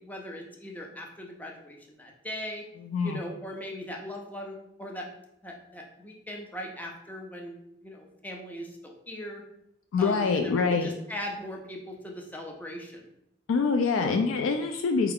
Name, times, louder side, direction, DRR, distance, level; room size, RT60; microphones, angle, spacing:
voice 1, 0.0-2.6 3.0-5.1 5.4-7.5 7.8-9.4 10.0-13.1 13.9-14.3, equal, 10° left, 1 dB, 0.5 m, -39 dB
voice 2, 2.9-3.2 9.9-10.9 13.5-15.1, left 4 dB, 80° left, 5 dB, 0.3 m, -25 dB
4.5 x 2.3 x 3.4 m, 0.79 s
head